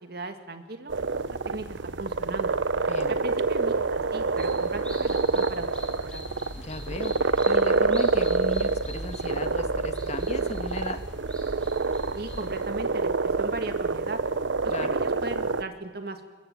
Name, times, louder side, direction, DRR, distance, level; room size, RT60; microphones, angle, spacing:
voice 1, 0.0-2.5 3.1-6.2 12.1-14.2 14.6-16.3, right 2 dB, 55° right, 7 dB, 2.3 m, -37 dB
sound 1, 0.9-15.6, right 4 dB, 85° right, 0.9 m, -27 dB
sound 2, 4.4-12.6, equal, 5° left, 5.3 m, -41 dB
voice 2, 6.6-11.0 14.7-15.0, left 1 dB, 40° left, 8 dB, 1.8 m, -36 dB
22.5 x 22.0 x 8.9 m, 1.2 s
head